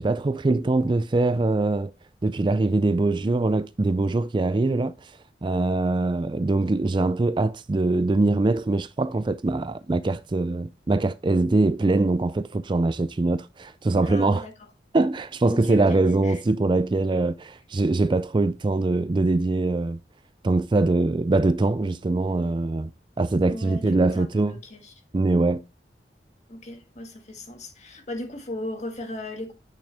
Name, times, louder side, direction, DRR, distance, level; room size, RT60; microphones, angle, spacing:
voice 1, 0.0-1.9 2.2-5.1 5.4-14.4 14.9-20.0 20.4-22.9 23.2-24.5 25.1-25.6, right 2 dB, 25° right, 0.4 m, -23 dB
voice 2, 14.0-14.7 15.4-16.4 23.2-24.9 26.5-29.5, left 1 dB, 40° left, 1.8 m, -37 dB
9.0 x 6.0 x 3.4 m
head